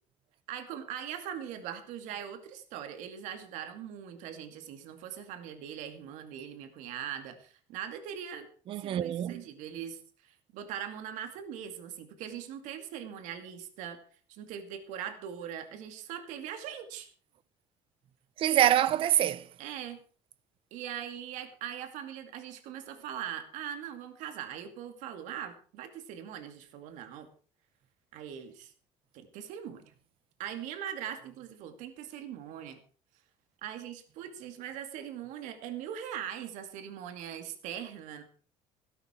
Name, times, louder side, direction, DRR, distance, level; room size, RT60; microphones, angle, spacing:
voice 1, 0.5-8.5 8.7-14.0 14.3-17.1 19.6-20.0 20.7-27.3 28.1-28.7 29.1-29.8 30.4-32.8 33.6-38.2, right 9 dB, 80° right, 2.4 m, -41 dB
voice 2, 8.7-9.5 18.4-19.5, right 11 dB, 45° right, 0.8 m, -25 dB
17.0 x 12.0 x 4.5 m
cardioid pair, 175°, 13 cm